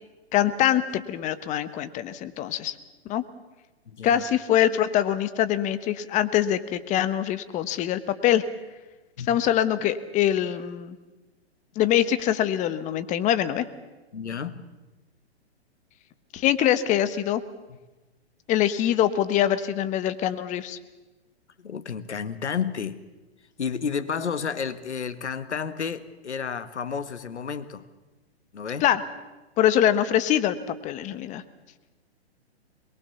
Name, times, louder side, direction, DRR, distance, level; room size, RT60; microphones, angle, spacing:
voice 1, 0.3-2.7 3.1-3.2 4.0-8.4 9.3-11.0 11.7-13.7 16.3-17.4 18.5-20.8 28.8-29.0 29.6-30.6 30.8-31.4, left 11 dB, 20° left, 13 dB, 1.2 m, -23 dB
voice 2, 3.9-4.2 9.2-9.4 14.1-14.7 21.6-23.0 23.6-27.8 28.5-28.8, left 6 dB, 85° left, 12 dB, 1.7 m, -31 dB
22.5 x 22.0 x 7.1 m, 1.2 s
hypercardioid pair, 130°, 33 cm